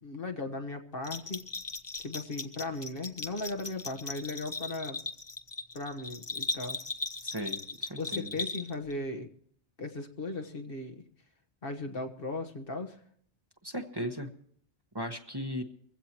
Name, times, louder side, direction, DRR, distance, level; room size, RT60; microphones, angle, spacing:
voice 1, 0.0-1.4 2.0-5.0 5.7-6.8 8.0-9.3 9.8-11.0 11.6-13.0, left 2 dB, 55° left, 5 dB, 1.5 m, -37 dB
Bell, 1.0-8.9, left 3 dB, 25° left, 0.9 m, -38 dB
voice 2, 7.2-8.3 13.6-14.3 14.9-15.6, equal, 20° right, 4 dB, 1.2 m, -37 dB
22.0 x 16.0 x 3.0 m, 0.63 s
omnidirectional pair, 1.1 m